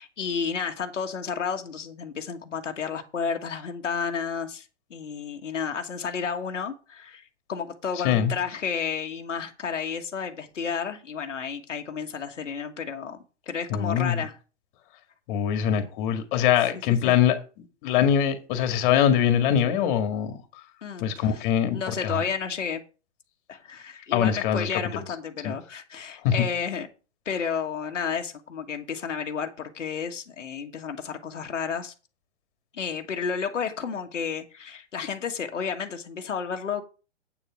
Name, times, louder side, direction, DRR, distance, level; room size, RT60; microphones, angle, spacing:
voice 1, 0.0-13.2 13.5-14.4 17.0-17.2 20.8-21.4 21.7-22.8 23.5-26.9 27.2-31.9 32.7-36.8, left 6 dB, 90° left, 1.5 m, -31 dB
voice 2, 13.7-14.3 15.3-17.4 17.8-20.4 21.0-22.2 24.1-24.7 25.4-25.5 26.2-26.5, left 9 dB, 45° left, 1.9 m, -23 dB
8.6 x 7.2 x 4.9 m
hypercardioid pair, 130°, 36 cm